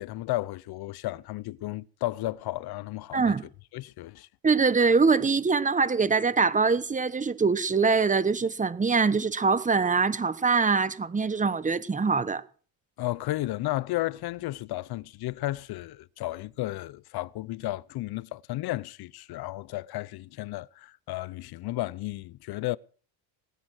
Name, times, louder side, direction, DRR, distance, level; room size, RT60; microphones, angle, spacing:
voice 1, 0.0-3.4 3.7-4.3 13.0-22.8, left 17 dB, 50° left, 0.7 m, -33 dB
voice 2, 3.1-3.5 4.4-12.4, right 4 dB, 15° right, 1.0 m, -23 dB
19.5 x 9.7 x 6.3 m
cardioid pair, 110°, 48 cm